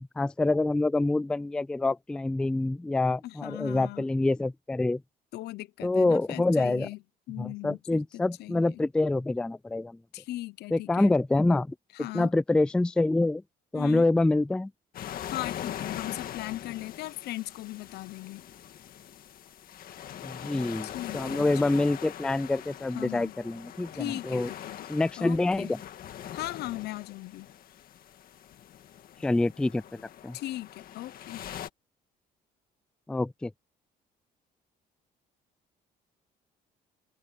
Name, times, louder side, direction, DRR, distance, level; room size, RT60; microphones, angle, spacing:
voice 1, 0.2-5.0 5.8-6.9 7.4-10.0 10.7-11.7 12.1-13.4 13.7-14.7 20.2-24.5 24.9-25.8 29.2-30.4 33.1-33.5, left 2 dB, 5° left, 0.3 m, -26 dB
voice 2, 3.2-4.0 5.3-7.0 7.3-8.8 10.1-11.2 11.9-12.3 13.7-14.1 15.3-18.4 20.8-21.7 22.9-23.3 23.9-24.9 25.2-25.7 26.3-27.5 30.3-31.4, left 16 dB, 75° left, 0.8 m, -38 dB
sound 1, 14.9-31.7, left 10 dB, 60° left, 1.9 m, -42 dB
cardioid pair, 110°, 17 cm